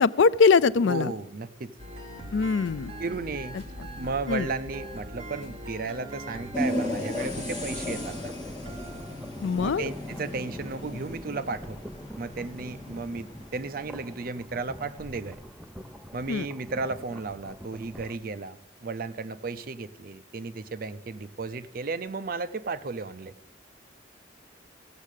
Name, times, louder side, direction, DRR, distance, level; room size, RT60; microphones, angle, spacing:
voice 1, 0.0-1.1 2.3-2.9 4.3-4.5 9.4-9.8 16.3-16.5, left 5 dB, 80° left, 0.4 m, -22 dB
voice 2, 0.9-1.7 3.0-3.6 4.0-8.3 9.6-11.8 12.2-15.4 16.1-23.3, right 3 dB, 50° right, 0.5 m, -34 dB
sound 1, 1.8-11.0, right 1 dB, 30° right, 2.7 m, -42 dB
sound 2, 6.5-14.9, left 1 dB, 25° left, 2.0 m, -36 dB
sound 3, 8.0-18.2, equal, ahead, 0.5 m, -46 dB
15.5 x 7.3 x 6.6 m
head